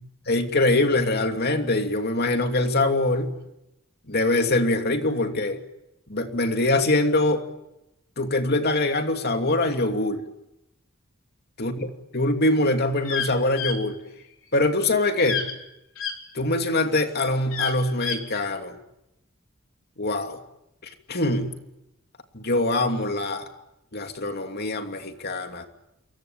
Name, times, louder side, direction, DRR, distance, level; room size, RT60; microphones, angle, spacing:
voice 1, 0.3-3.3 4.1-5.6 6.1-7.4 8.2-10.2 11.6-14.0 14.5-15.5 16.3-18.7 20.0-20.4 21.1-21.5 22.3-23.4 23.9-25.7, left 2 dB, 50° left, 5 dB, 2.9 m, -23 dB
sound 1, 13.0-13.3 13.6-13.8 15.2-15.5 16.0-16.1 17.5-18.2, left 6 dB, 85° left, 3.6 m, -28 dB
28.0 x 23.0 x 8.8 m, 0.87 s
head